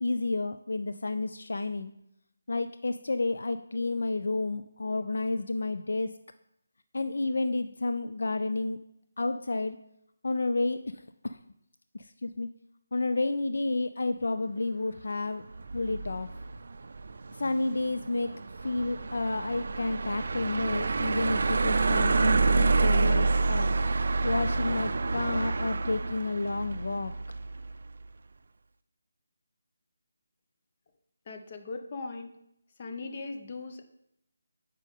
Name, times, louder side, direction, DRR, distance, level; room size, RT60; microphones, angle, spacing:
voice 1, 0.0-1.9 2.5-6.1 6.9-8.8 9.2-9.8 10.2-11.4 11.9-12.5 12.9-15.4 15.7-16.3 17.4-23.7 24.2-27.1, left 2 dB, 70° left, 9 dB, 0.3 m, -31 dB
sound 1, 15.5-27.7, right 3 dB, 60° right, 0.4 m, -28 dB
voice 2, 31.3-32.3 32.8-33.9, left 3 dB, 35° left, 5 dB, 0.7 m, -39 dB
8.1 x 5.2 x 3.6 m, 0.79 s
figure-of-eight pair, 165°, 0 cm